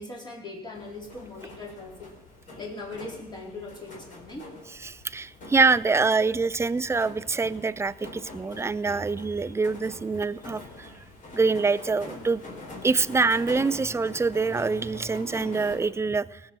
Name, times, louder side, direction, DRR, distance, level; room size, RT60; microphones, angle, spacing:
voice 1, 0.0-2.1 2.6-4.5 5.9-6.0, left 2 dB, 25° left, -1 dB, 4.0 m, -40 dB
sound 1, 0.7-15.8, left 2 dB, 50° left, 4.1 m, -45 dB
voice 2, 4.8-10.9 11.3-12.4 12.8-16.4, right 4 dB, 15° right, 17 dB, 0.4 m, -25 dB
18.5 x 7.5 x 6.0 m, 0.98 s
cardioid pair, 110°, 17 cm